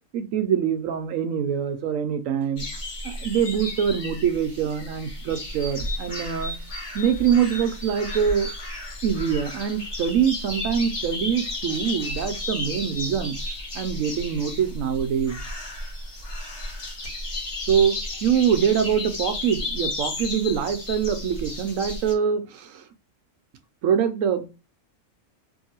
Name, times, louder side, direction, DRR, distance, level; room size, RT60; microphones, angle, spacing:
voice 1, 0.1-2.7 3.0-6.5 6.9-8.5 9.0-13.4 13.7-15.4 17.7-22.8 23.8-24.4, right 8 dB, 70° right, 8 dB, 0.9 m, -24 dB
sound 1, 2.6-22.1, left 2 dB, 55° left, 1.4 m, -33 dB
2.9 x 2.7 x 2.7 m, 0.30 s
omnidirectional pair, 1.6 m